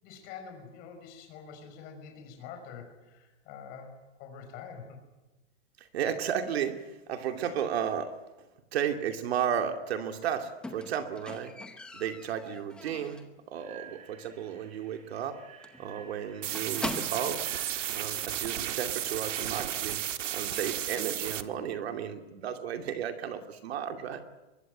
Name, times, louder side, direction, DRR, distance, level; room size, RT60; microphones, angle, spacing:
voice 1, 0.0-5.0, left 6 dB, 25° left, 4 dB, 5.5 m, -46 dB
voice 2, 5.9-8.2 8.7-11.6 11.9-15.4 15.8-17.5 17.9-20.0 20.3-24.2, right 8 dB, 55° right, 7 dB, 2.7 m, -33 dB
Squeak, 10.6-13.4 13.7-14.1 14.4-14.5 14.9-15.0 15.2-15.4 15.6-17.5 18.3-18.4, left 2 dB, ahead, 0.8 m, -41 dB
sound 1, 13.6-18.9, right 9 dB, 20° right, 3.5 m, -53 dB
sound 2, 16.4-21.4, right 11 dB, 85° right, 1.8 m, -33 dB
23.5 x 23.0 x 9.2 m, 1.1 s
supercardioid pair, 180°, 37 cm